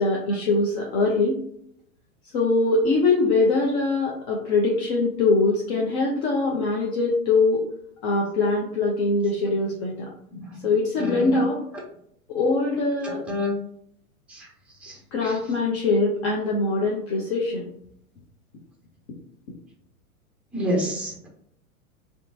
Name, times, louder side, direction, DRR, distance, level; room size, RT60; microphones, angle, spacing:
voice 1, 0.0-1.4 2.3-7.6 8.0-10.1 10.6-11.6 12.3-13.2 15.1-17.7, left 3 dB, 50° left, -2 dB, 0.7 m, -22 dB
voice 2, 10.3-10.6 11.0-11.4 13.3-13.5 14.3-14.5 14.8-15.4 20.5-21.3, left 1 dB, 5° right, -2 dB, 0.4 m, -29 dB
2.8 x 2.2 x 2.7 m, 0.69 s
hypercardioid pair, 110°, 43 cm